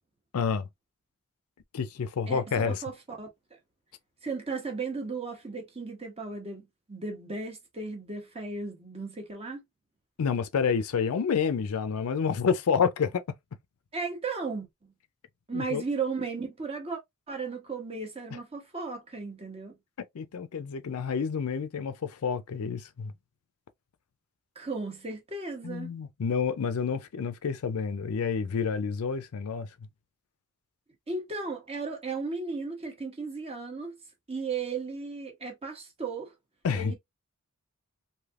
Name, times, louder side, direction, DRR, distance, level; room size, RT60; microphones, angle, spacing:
voice 1, 0.3-0.7 1.7-2.8 10.2-13.2 15.5-15.8 20.1-23.1 25.6-29.7 36.6-36.9, left 6 dB, 75° left, 0.5 m, -29 dB
voice 2, 2.3-3.3 4.2-9.6 13.9-14.7 15.5-17.0 17.3-19.8 24.5-25.9 31.1-33.9 34.3-36.3 36.7-37.0, right 4 dB, 25° right, 1.0 m, -35 dB
3.3 x 2.7 x 2.4 m
head